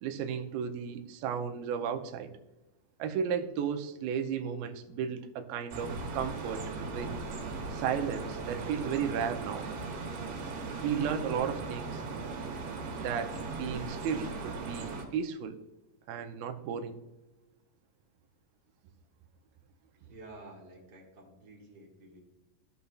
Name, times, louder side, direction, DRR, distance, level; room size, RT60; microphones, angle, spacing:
voice 1, 0.0-2.3 3.0-7.1 7.7-9.7 10.8-12.0 13.0-15.6 16.1-17.0, right 7 dB, 85° right, 6 dB, 2.4 m, -34 dB
sound 1, 5.7-15.1, right 3 dB, 65° right, 3.0 m, -38 dB
voice 2, 20.0-22.2, right 2 dB, 40° right, -2 dB, 1.6 m, -51 dB
15.5 x 5.3 x 2.4 m, 1.1 s
omnidirectional pair, 4.3 m